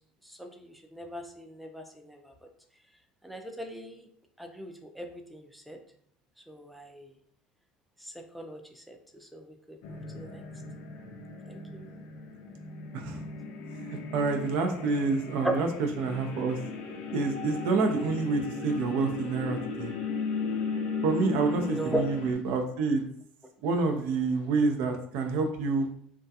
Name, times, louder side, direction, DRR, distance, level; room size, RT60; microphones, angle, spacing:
voice 1, 0.3-2.3 3.2-4.1 4.4-5.8 6.5-7.1 8.0-9.5 9.9-10.4 11.5-11.9 15.4-15.5 21.6-22.0, right 1 dB, ahead, 3 dB, 0.4 m, -38 dB
sound 1, 9.8-22.3, left 4 dB, 70° left, 0.5 m, -37 dB
voice 2, 13.7-15.7 16.0-16.6 17.1-19.9 21.0-23.0 23.6-25.9, right 4 dB, 75° right, 5 dB, 0.4 m, -28 dB
2.3 x 2.2 x 2.7 m, 0.63 s
supercardioid pair, 100°, 3 cm